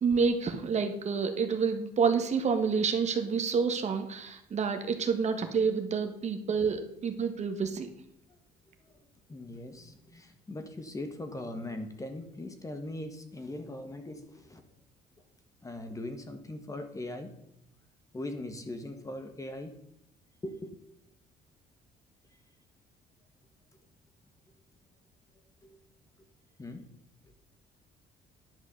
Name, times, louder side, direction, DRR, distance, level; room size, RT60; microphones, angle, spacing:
voice 1, 0.0-7.9, right 5 dB, 40° right, 6 dB, 1.6 m, -28 dB
voice 2, 8.9-14.6 15.6-17.3 18.1-19.8 20.4-20.8 25.6-25.8 26.6-26.9, left 1 dB, 20° left, 7 dB, 1.5 m, -40 dB
10.5 x 6.2 x 6.6 m, 0.79 s
cardioid pair, 110°, 17 cm